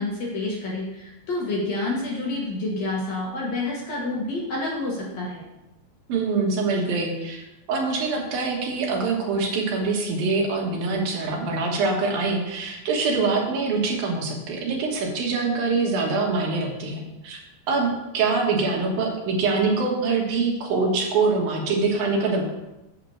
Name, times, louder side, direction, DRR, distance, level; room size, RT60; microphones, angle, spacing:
voice 1, 0.0-5.4, left 2 dB, 55° left, -3 dB, 2.4 m, -28 dB
voice 2, 6.1-17.4 17.7-22.4, right 4 dB, 70° right, 0 dB, 3.2 m, -24 dB
8.3 x 4.9 x 7.1 m, 0.95 s
omnidirectional pair, 4.4 m